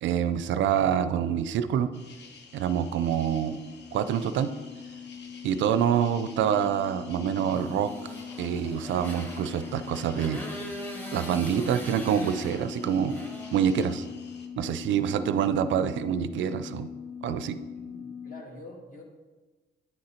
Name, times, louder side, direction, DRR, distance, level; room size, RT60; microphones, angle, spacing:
voice 1, 0.0-1.9 2.5-3.6 3.9-4.5 5.4-7.9 8.4-10.4 11.1-13.2 13.5-14.1 14.6-16.9 17.2-17.6, right 8 dB, 70° right, 12 dB, 0.4 m, -26 dB
sound 1, 1.9-14.5, left 4 dB, 60° left, 0.8 m, -51 dB
sound 2, 2.2-18.4, left 7 dB, 90° left, 0.5 m, -42 dB
Motorcycle, 7.5-14.2, equal, 10° left, 1.3 m, -42 dB
voice 2, 17.7-19.0, left 2 dB, 45° left, 0 dB, 1.7 m, -46 dB
9.3 x 3.8 x 4.3 m, 1.2 s
cardioid pair, 90°, 20 cm